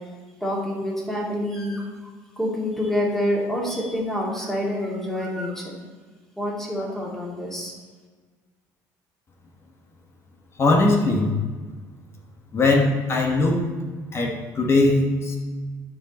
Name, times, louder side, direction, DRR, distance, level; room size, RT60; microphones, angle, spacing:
voice 1, 0.4-5.7 6.4-7.7, left 1 dB, 5° left, -4 dB, 2.4 m, -27 dB
voice 2, 10.6-11.3 12.5-13.6 14.1-15.4, left 2 dB, 35° left, 1 dB, 1.3 m, -20 dB
12.5 x 4.9 x 3.0 m, 1.4 s
cardioid pair, 105°, 7 cm